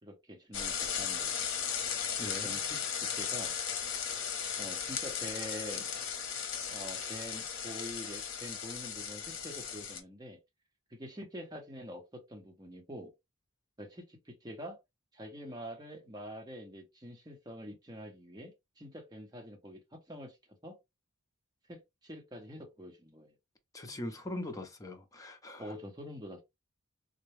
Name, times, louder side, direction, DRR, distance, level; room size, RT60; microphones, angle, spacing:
voice 1, 0.0-1.4 2.2-3.5 4.6-5.9 6.7-10.4 10.9-13.1 13.8-14.8 15.1-20.4 20.6-20.8 21.7-23.3 25.6-26.4, equal, 20° right, 0.8 m, -46 dB
sound 1, 0.5-10.0, left 7 dB, 65° left, 0.8 m, -36 dB
voice 2, 2.2-2.6 23.7-25.7, left 1 dB, 15° left, 0.6 m, -41 dB
3.9 x 2.2 x 3.1 m
head